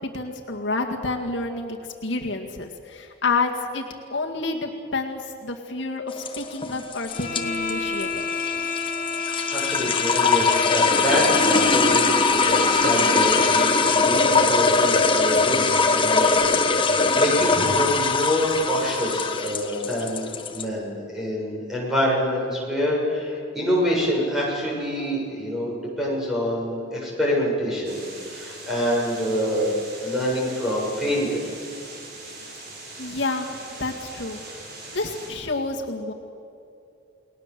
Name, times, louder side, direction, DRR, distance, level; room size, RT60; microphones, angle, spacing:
voice 1, 0.0-8.3 33.0-33.5 33.8-34.4 34.9-36.1, left 3 dB, 65° left, 1 dB, 2.0 m, -29 dB
sound 1, 6.1-20.6, left 4 dB, 25° left, 1.4 m, -21 dB
sound 2, 7.1-14.2, left 5 dB, 45° left, 3.1 m, -30 dB
voice 2, 9.5-29.7 30.0-31.4, equal, ahead, -4 dB, 7.6 m, -26 dB
sound 3, 27.8-35.3, right 2 dB, 50° right, 6.5 m, -41 dB
30.0 x 20.5 x 7.6 m, 2.6 s
head